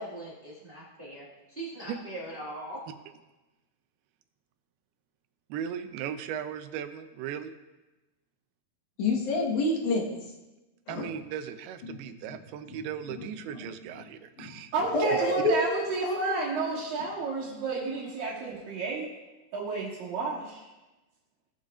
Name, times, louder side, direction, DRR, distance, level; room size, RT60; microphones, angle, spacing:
voice 1, 0.0-2.8, right 1 dB, 45° right, -7 dB, 0.6 m, -41 dB
voice 2, 5.5-7.5 10.9-14.7, right 8 dB, 85° right, 9 dB, 2.6 m, -37 dB
voice 3, 9.0-10.1 10.9-11.1 11.8-12.0 12.3-12.4 12.7-13.3 13.6-14.0 14.4-14.6 14.9-16.3, left 2 dB, 60° left, -2 dB, 2.4 m, -29 dB
voice 4, 14.7-19.1 19.5-20.7, right 3 dB, 65° right, -7 dB, 3.2 m, -31 dB
18.0 x 7.2 x 2.4 m, 1.1 s
omnidirectional pair, 4.5 m